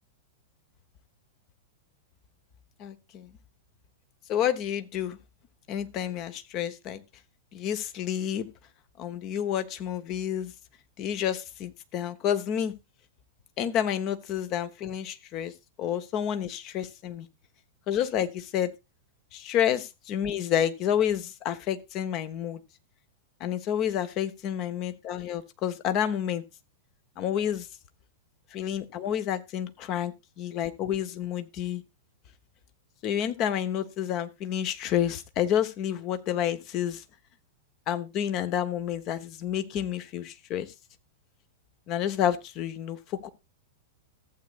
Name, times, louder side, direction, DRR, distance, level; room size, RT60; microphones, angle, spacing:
voice 1, 2.8-3.3 4.3-5.2 5.7-7.0 7.5-8.5 9.0-10.5 11.0-12.7 13.6-15.5 15.8-17.3 17.9-18.7 19.3-22.6 23.4-26.4 27.2-27.7 28.5-31.8 33.0-37.0 37.9-40.7 41.9-43.3, left 10 dB, 35° left, 11 dB, 0.9 m, -29 dB
14.5 x 8.1 x 2.4 m, 0.24 s
figure-of-eight pair, 95°, 0 cm